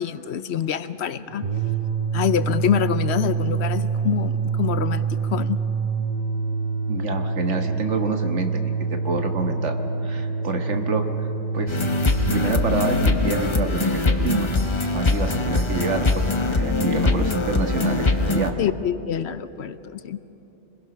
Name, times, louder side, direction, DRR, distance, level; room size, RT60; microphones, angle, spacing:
voice 1, 0.0-1.4 2.1-5.6 18.6-20.2, left 9 dB, 65° left, 13 dB, 0.9 m, -26 dB
sound 1, 1.3-13.2, right 5 dB, 40° right, 1.1 m, -26 dB
voice 2, 6.9-9.7 10.0-11.1 11.5-11.8 12.3-14.5 14.9-18.5, right 3 dB, 75° right, 5 dB, 1.7 m, -27 dB
sound 2, 11.7-18.5, left 2 dB, 30° left, 0.8 m, -22 dB
26.5 x 21.0 x 6.0 m, 3.0 s
omnidirectional pair, 1.2 m